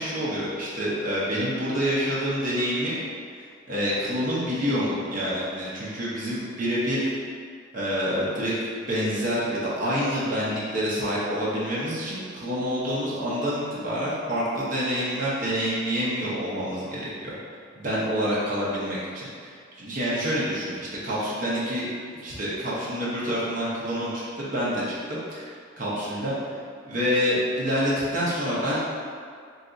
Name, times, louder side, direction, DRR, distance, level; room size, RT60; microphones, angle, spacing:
voice 1, 0.0-3.0 3.4-7.1 7.7-17.3 17.7-21.9 22.2-26.3 26.8-28.8, equal, 40° right, -8 dB, 0.6 m, -27 dB
2.7 x 2.3 x 3.7 m, 2.1 s
head